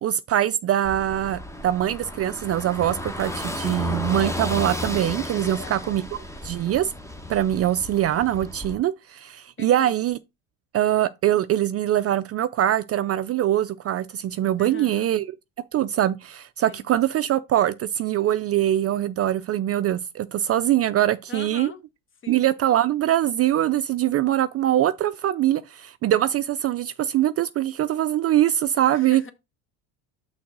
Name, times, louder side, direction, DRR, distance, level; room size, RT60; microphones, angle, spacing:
voice 1, 0.0-6.0 6.4-6.9 7.3-10.2 10.7-15.2 15.7-21.7 22.3-29.2, right 12 dB, 35° right, 0.4 m, -23 dB
Car passing by / Engine, 0.8-8.7, left 1 dB, 5° left, 1.0 m, -33 dB
voice 2, 5.4-5.9 9.6-9.9 14.6-15.1 16.7-16.9 21.3-21.8 22.2-22.5 28.9-29.3, left 5 dB, 30° left, 1.2 m, -41 dB
6.1 x 3.9 x 6.0 m
supercardioid pair, 105°, 40 cm